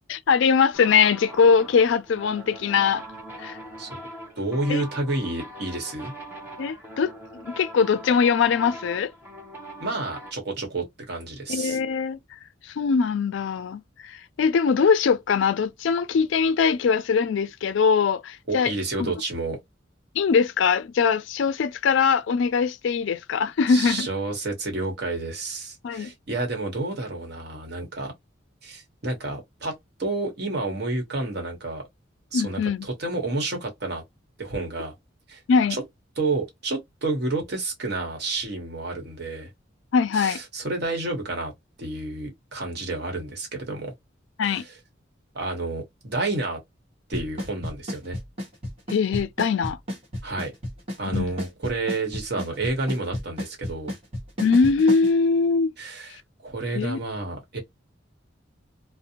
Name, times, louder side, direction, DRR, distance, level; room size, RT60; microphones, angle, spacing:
voice 1, 0.1-3.0 3.4-3.6 4.7-4.8 6.6-7.1 7.4-9.1 11.5-12.2 12.8-18.7 19.0-19.1 20.2-24.1 25.8-26.1 32.3-32.9 35.5-35.8 39.9-40.4 44.4-44.6 48.9-49.8 51.1-51.3 54.4-55.7 56.7-57.0, left 5 dB, 70° left, 0.4 m, -22 dB
sound 1, 0.7-10.3, equal, 10° right, 0.8 m, -41 dB
voice 2, 4.4-6.1 9.8-11.8 18.5-19.6 23.7-28.1 28.6-31.8 32.3-34.0 34.4-34.9 35.3-35.4 35.7-35.8 36.2-39.5 40.1-41.5 41.8-43.9 44.4-44.8 45.3-46.6 47.1-48.2 50.2-50.5 51.0-53.9 55.8-56.1 56.4-57.6, right 2 dB, 55° right, 1.0 m, -30 dB
Drum kit / Snare drum / Bass drum, 47.1-55.1, left 1 dB, 30° right, 1.2 m, -31 dB
2.5 x 2.0 x 2.8 m
head